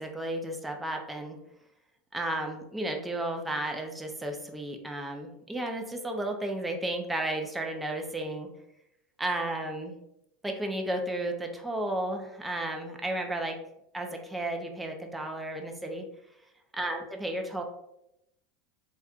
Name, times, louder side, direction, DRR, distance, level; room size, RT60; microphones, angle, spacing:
voice 1, 0.0-1.4 2.1-8.5 9.2-9.9 10.4-13.6 13.9-16.1 16.8-17.6, right 1 dB, 5° right, 3 dB, 0.4 m, -33 dB
4.1 x 2.3 x 2.3 m, 0.83 s
supercardioid pair, 135°, 0 cm